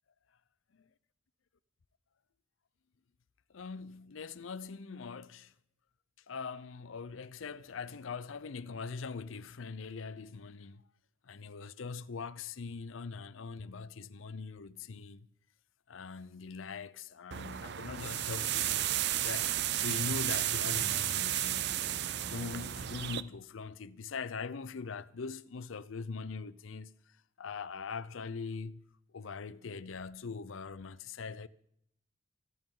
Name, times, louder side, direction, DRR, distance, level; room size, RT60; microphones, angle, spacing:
voice 1, 3.5-5.5 6.3-10.8 11.2-15.3 15.9-21.8 22.3-26.9 27.4-28.8 29.1-31.5, left 4 dB, 80° left, 0.6 m, -42 dB
sound 1, 17.3-23.2, right 12 dB, 55° right, 0.5 m, -33 dB
25.0 x 11.0 x 3.8 m
head